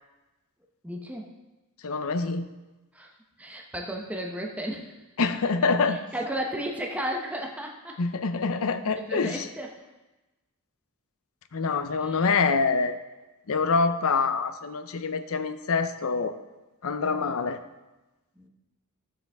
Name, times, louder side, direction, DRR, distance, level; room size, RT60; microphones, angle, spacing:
voice 1, 0.8-1.3 2.9-3.1 3.4-4.9 5.9-8.0 9.0-9.7 12.0-12.3 17.0-17.4 18.4-18.5, equal, 5° right, 0 dB, 0.8 m, -34 dB
voice 2, 1.8-2.5 5.2-6.0 8.0-9.5 11.5-13.0 13.5-16.3 16.8-17.6, left 4 dB, 70° left, 10 dB, 0.6 m, -25 dB
12.0 x 7.6 x 3.5 m, 1.1 s
head